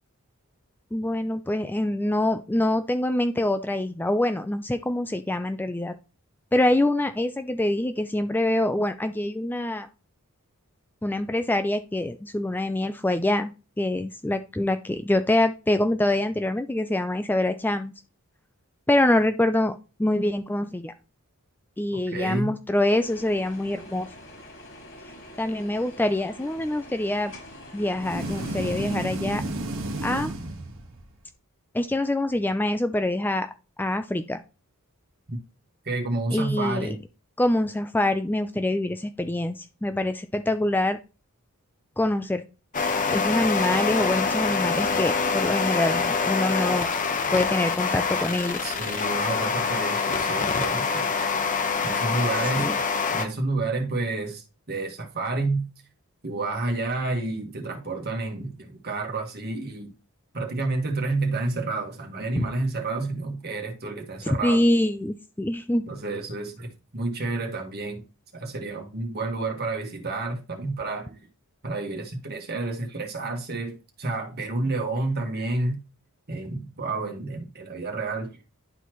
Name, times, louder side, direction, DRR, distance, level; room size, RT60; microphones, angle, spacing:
voice 1, 0.9-5.9 6.5-9.9 11.0-13.5 13.8-17.9 18.9-19.7 20.0-20.9 21.8-24.1 25.4-27.3 27.7-29.4 30.0-30.3 31.7-33.5 33.8-34.4 36.3-37.0 37.4-41.0 42.0-42.4 43.1-46.9 47.3-48.7 52.6-52.8 62.4-62.5 64.2-65.9, left 1 dB, 10° left, 0.4 m, -25 dB
voice 2, 21.9-22.5 35.3-35.4 35.8-37.0 48.6-51.1 51.8-52.7 53.1-55.7 56.2-59.9 60.3-64.6 65.9-68.0 68.3-71.2 71.6-75.8 76.3-78.3, right 2 dB, 45° right, 1.7 m, -30 dB
sound 1, 23.0-29.1, left 1 dB, 60° left, 4.8 m, -44 dB
sound 2, 28.0-31.2, right 2 dB, 65° right, 1.3 m, -32 dB
sound 3, 42.7-53.3, left 5 dB, 35° left, 0.8 m, -25 dB
11.0 x 4.2 x 3.1 m
head